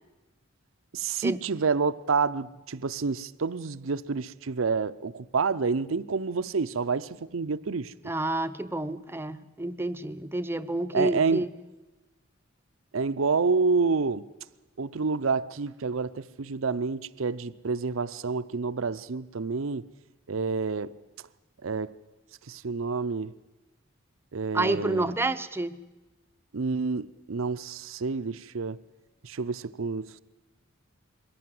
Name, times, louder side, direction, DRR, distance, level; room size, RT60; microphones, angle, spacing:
voice 1, 0.9-7.9 10.9-11.4 12.9-14.2 14.8-19.9 20.3-21.0 21.6-21.9 22.5-23.3 24.3-25.1 26.5-28.8 29.2-30.2, right 4 dB, 75° right, 0.6 m, -28 dB
voice 2, 8.1-11.5 24.5-25.8, right 2 dB, 10° right, 0.6 m, -29 dB
22.5 x 17.0 x 7.7 m
head